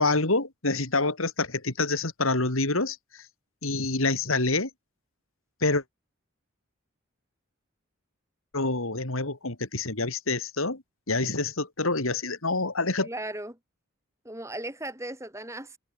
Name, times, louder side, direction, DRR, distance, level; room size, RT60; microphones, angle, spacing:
voice 1, 0.0-3.2 3.6-4.7 5.6-5.8 8.5-10.8 11.1-13.1, left 3 dB, 80° left, 3.2 m, -27 dB
voice 2, 13.0-13.6 14.3-15.8, right 1 dB, 15° right, 7.0 m, -36 dB
head